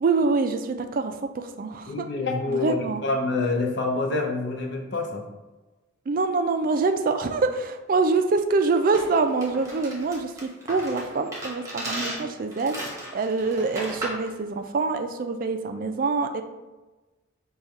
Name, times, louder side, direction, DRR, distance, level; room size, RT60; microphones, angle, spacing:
voice 1, 0.0-2.1 2.5-3.0 6.1-16.4, right 4 dB, 45° right, 6 dB, 0.3 m, -25 dB
voice 2, 1.9-2.8 3.0-5.2, left 3 dB, 55° left, 1 dB, 0.6 m, -26 dB
sound 1, 8.9-14.3, right 1 dB, 15° right, 0.9 m, -36 dB
5.0 x 2.3 x 4.1 m, 1.2 s
head